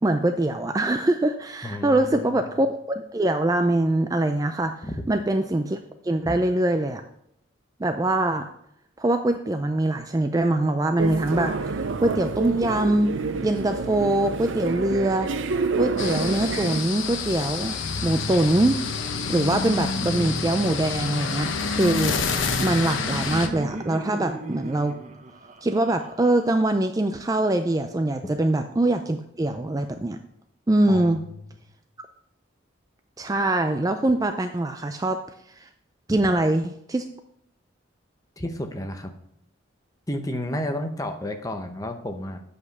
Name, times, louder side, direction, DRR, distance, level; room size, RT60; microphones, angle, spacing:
voice 1, 0.0-7.0 7.8-8.5 9.0-13.2 13.4-15.3 15.8-17.8 18.0-18.8 19.3-22.2 22.6-24.9 25.6-30.2 30.7-31.2 33.2-35.2 35.6-35.7 36.1-37.0, right 1 dB, 20° right, 7 dB, 0.3 m, -23 dB
voice 2, 1.6-2.5 4.8-5.0 6.3-6.4 30.9-31.4 36.1-36.2 38.4-39.1 40.1-42.4, left 1 dB, 15° left, 6 dB, 0.8 m, -32 dB
sound 1, 11.0-16.8, right 4 dB, 75° right, 0.5 m, -28 dB
sound 2, 16.0-23.5, left 4 dB, 75° left, 0.9 m, -28 dB
Laughter, 22.4-27.1, right 1 dB, 35° right, 0.8 m, -38 dB
8.3 x 5.1 x 6.5 m, 0.74 s
head